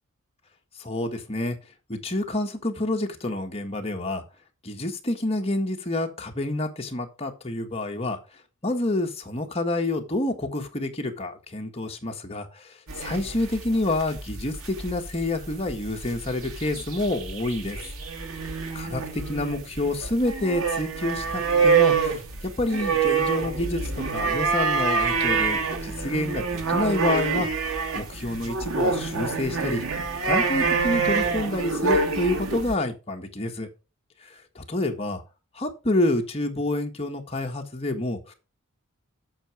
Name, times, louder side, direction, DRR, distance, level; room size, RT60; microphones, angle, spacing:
voice 1, 0.8-1.6 1.9-4.2 4.6-8.2 8.6-17.8 18.7-22.2 22.6-23.8 24.1-27.5 27.9-29.8 30.2-33.7 34.2-35.2 35.5-38.3, left 1 dB, 30° left, 3 dB, 1.6 m, -28 dB
sound 1, 12.9-32.7, right 5 dB, 85° right, 2.2 m, -26 dB
9.0 x 6.4 x 4.9 m, 0.30 s
head